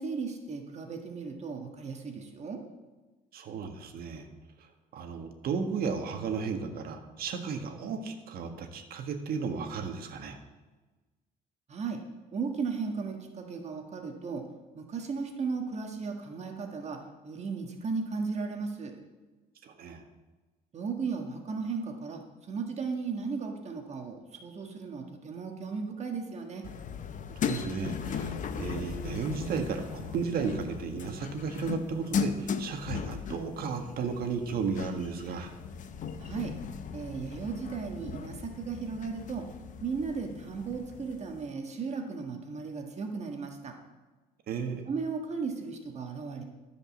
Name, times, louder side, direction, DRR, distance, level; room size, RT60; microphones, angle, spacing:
voice 1, 0.0-2.6 11.7-12.0 12.3-14.4 14.7-18.9 20.7-26.6 36.2-36.5 36.9-39.5 39.8-43.7 44.9-46.4, right 5 dB, 40° right, 3 dB, 1.5 m, -35 dB
voice 2, 3.3-4.3 4.9-10.4 19.6-20.0 27.4-35.5 44.5-44.9, right 5 dB, 65° right, 5 dB, 1.6 m, -34 dB
sound 1, 26.6-41.4, left 6 dB, 50° left, 0.8 m, -37 dB
13.0 x 5.3 x 7.2 m, 1.2 s
cardioid pair, 110°, 17 cm